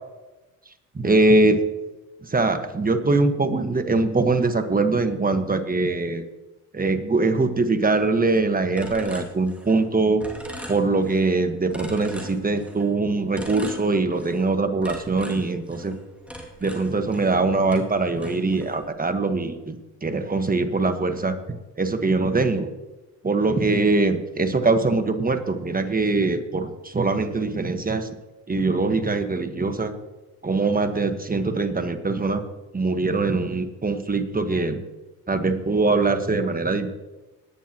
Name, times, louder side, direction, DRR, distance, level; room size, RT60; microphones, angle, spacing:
voice 1, 0.9-1.6 2.2-6.2 6.7-10.2 10.7-15.9 16.6-21.4 21.8-22.7 23.2-28.1 28.5-29.9 30.4-32.4 32.7-34.8 35.3-36.9, right 3 dB, 20° right, 7 dB, 1.5 m, -22 dB
sound 1, 8.8-9.9 10.2-11.3 11.7-12.9 13.3-14.5 14.8-17.4 17.7-18.9, equal, 5° right, 2.5 m, -40 dB
20.0 x 9.5 x 3.0 m, 1.1 s
supercardioid pair, 60°, 40 cm